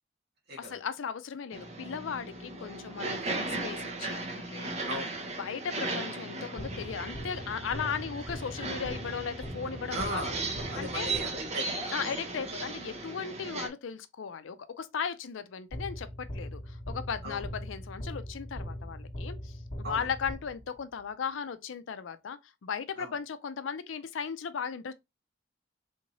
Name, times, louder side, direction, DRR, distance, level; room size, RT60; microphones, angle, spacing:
voice 1, 0.6-4.7 5.2-10.2 10.8-11.1 11.9-24.9, left 6 dB, 90° left, 0.4 m, -37 dB
sound 1, 1.5-13.7, right 3 dB, 35° right, 0.7 m, -37 dB
sound 2, 6.6-11.7 15.7-20.9, equal, 45° left, 1.0 m, -41 dB
voice 2, 9.9-12.2 17.2-17.4 19.8-20.0 23.0-23.1, equal, 60° right, 1.6 m, -38 dB
3.5 x 2.7 x 2.9 m
head